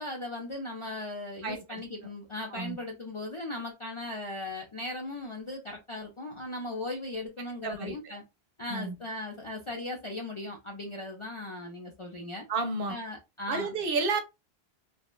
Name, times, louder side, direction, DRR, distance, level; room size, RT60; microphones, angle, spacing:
voice 1, 0.0-8.2 8.6-12.4 12.9-13.7, left 2 dB, 45° left, 0.4 m, -38 dB
voice 2, 1.4-1.8 2.5-2.8 7.6-7.9 8.7-8.9 12.5-13.0 13.5-14.2, right 3 dB, 65° right, 0.7 m, -31 dB
2.9 x 2.0 x 2.2 m
omnidirectional pair, 1.1 m